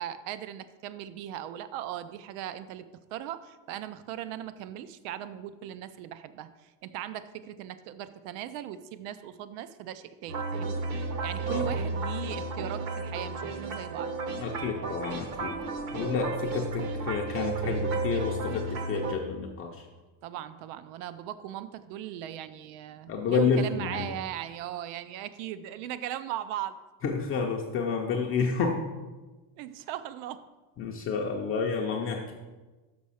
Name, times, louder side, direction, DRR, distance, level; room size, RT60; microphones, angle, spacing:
voice 1, 0.0-2.9 3.1-14.1 20.2-26.8 29.6-30.4, right 11 dB, 80° right, 13 dB, 0.6 m, -38 dB
sound 1, 10.3-19.2, right 3 dB, 45° right, 0.8 m, -33 dB
voice 2, 11.5-11.8 14.4-15.5 15.9-19.8 23.1-24.1 27.0-28.8 30.8-32.3, left 5 dB, 30° left, 0 dB, 0.4 m, -30 dB
6.3 x 6.2 x 5.5 m, 1.2 s
cardioid pair, 175°, 47 cm